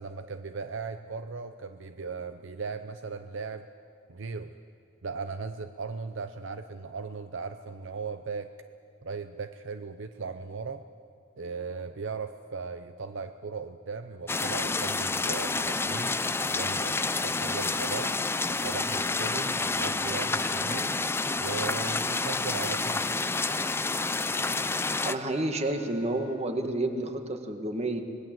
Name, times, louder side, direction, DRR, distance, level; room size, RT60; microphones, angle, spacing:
voice 1, 0.0-3.7 4.1-4.5 5.0-8.5 9.0-10.8 11.4-16.2 16.5-18.2 18.6-21.0 21.4-23.1, right 4 dB, 65° right, 9 dB, 0.7 m, -37 dB
sound 1, 14.3-25.1, left 3 dB, 10° left, 0.5 m, -29 dB
Wind instrument woodwind instrument, 14.6-26.4, left 6 dB, 75° left, 2.7 m, -50 dB
voice 2, 25.0-28.0, right 2 dB, 35° right, 6 dB, 1.7 m, -30 dB
26.0 x 20.0 x 7.7 m, 2.5 s
head